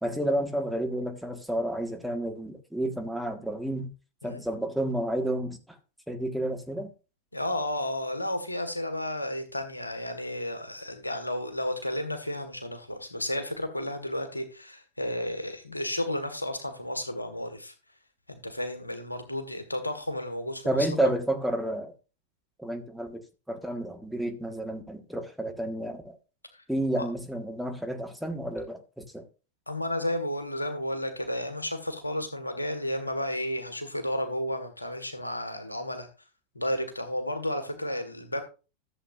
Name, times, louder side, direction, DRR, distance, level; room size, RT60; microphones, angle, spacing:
voice 1, 0.0-3.9 4.2-5.8 6.1-6.9 20.6-21.9 22.6-23.2 23.5-26.2 26.7-29.2, right 1 dB, ahead, 1.5 m, -30 dB
voice 2, 7.3-17.7 18.3-21.1 26.5-26.6 27.0-27.1 29.7-36.1 36.5-38.4, left 1 dB, 85° left, 1.6 m, -32 dB
14.0 x 7.5 x 2.5 m
figure-of-eight pair, 90°, 0 cm